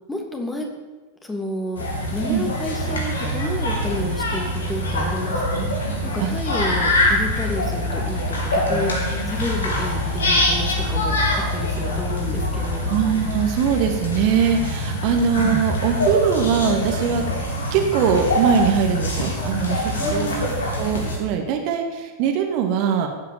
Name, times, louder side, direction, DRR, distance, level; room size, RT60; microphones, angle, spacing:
voice 1, 0.1-0.7 1.2-1.8 2.1-5.7 6.1-8.9 9.3-11.1 11.5-13.0 20.0-20.6, left 1 dB, 10° left, 2 dB, 2.7 m, -30 dB
sound 1, 1.8-21.2, left 1 dB, 70° left, 3.7 m, -24 dB
voice 2, 12.9-17.3 17.7-20.3 20.8-23.1, right 7 dB, 45° right, 4 dB, 2.1 m, -21 dB
16.5 x 9.1 x 7.1 m, 1.3 s
figure-of-eight pair, 90°, 0 cm